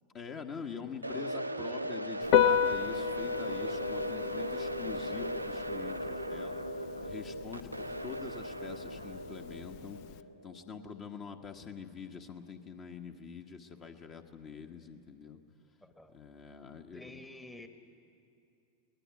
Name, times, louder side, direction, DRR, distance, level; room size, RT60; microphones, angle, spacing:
voice 1, 0.1-6.6 7.0-10.0 10.4-15.4 16.1-17.2, left 6 dB, 30° left, 5 dB, 1.2 m, -45 dB
sound 1, 1.0-11.1, right 1 dB, 85° right, 0.6 m, -38 dB
Piano, 2.2-10.2, left 8 dB, 45° left, 0.5 m, -33 dB
voice 2, 15.8-16.2 16.9-17.7, left 1 dB, 5° left, 8 dB, 1.2 m, -49 dB
23.0 x 19.0 x 8.3 m, 2.6 s
figure-of-eight pair, 90°, 0 cm